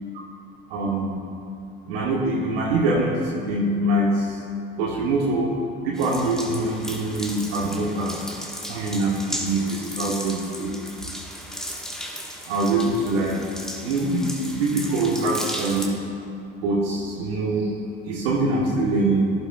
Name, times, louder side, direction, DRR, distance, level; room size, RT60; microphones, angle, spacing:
voice 1, 0.7-1.2 1.9-4.4 4.8-5.5 5.8-8.2 8.7-10.7 12.5-13.4 13.8-15.9 16.6-17.7 18.0-19.3, right 2 dB, 75° right, -4 dB, 1.3 m, -24 dB
sound 1, 5.9-15.9, equal, ahead, 1.3 m, -35 dB
11.5 x 11.5 x 2.3 m, 2.5 s
hypercardioid pair, 65°, 31 cm